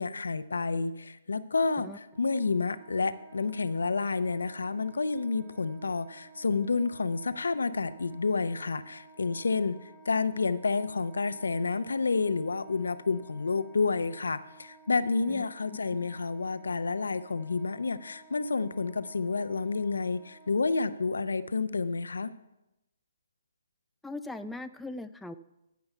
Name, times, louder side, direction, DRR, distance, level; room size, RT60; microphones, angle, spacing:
voice 1, 0.0-9.8 10.1-22.3, left 4 dB, 75° left, 13 dB, 0.6 m, -29 dB
Wind instrument woodwind instrument, 2.0-21.5, right 4 dB, 25° right, 1.2 m, -55 dB
voice 2, 24.0-25.4, left 2 dB, 5° left, 8 dB, 0.3 m, -39 dB
14.5 x 5.7 x 5.5 m, 0.92 s
figure-of-eight pair, 140°, 0 cm